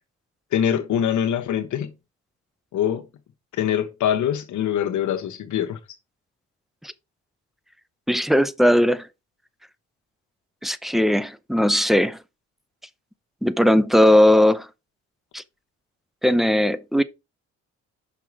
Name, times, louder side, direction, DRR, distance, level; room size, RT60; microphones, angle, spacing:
voice 1, 0.5-1.9 2.7-3.1 3.5-5.8, left 9 dB, 75° left, 1.3 m, -23 dB
voice 2, 8.1-9.1 10.6-12.2 13.4-14.7 15.3-15.4 16.2-17.0, left 1 dB, ahead, 0.6 m, -18 dB
6.0 x 5.9 x 4.7 m
cardioid pair, 90°, 30 cm